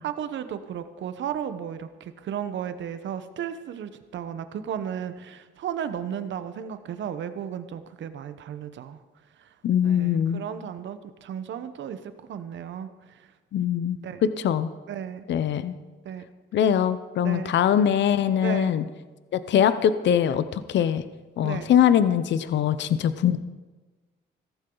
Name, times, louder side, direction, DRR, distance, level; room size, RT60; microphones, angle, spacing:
voice 1, 0.0-9.0 9.4-9.5 9.8-13.3 14.0-14.3 14.9-15.2 16.0-16.3 17.2-17.5 18.4-18.8 21.4-21.7, right 9 dB, 70° right, 11 dB, 1.1 m, -34 dB
voice 2, 9.6-10.4 13.5-14.0 14.4-14.7 15.3-15.7 16.5-18.8 19.3-21.0 21.4-23.4, left 9 dB, 65° left, 13 dB, 0.7 m, -22 dB
16.0 x 14.5 x 3.9 m, 1.3 s
cardioid pair, 90°, 20 cm